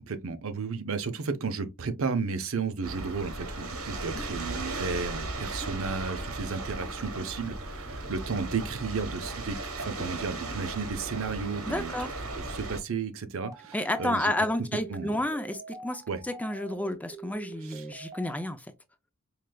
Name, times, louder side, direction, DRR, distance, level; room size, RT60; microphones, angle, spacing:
voice 1, 0.1-11.9 12.4-14.3 14.9-15.1 16.1-16.2 17.6-17.8, right 4 dB, 70° right, 0.7 m, -33 dB
sound 1, 2.8-12.8, right 2 dB, 85° right, 1.2 m, -36 dB
voice 2, 11.7-12.2 13.7-18.7, left 1 dB, 5° left, 0.4 m, -31 dB
sound 2, 13.4-18.5, right 3 dB, 15° right, 0.9 m, -45 dB
4.8 x 3.2 x 2.2 m
head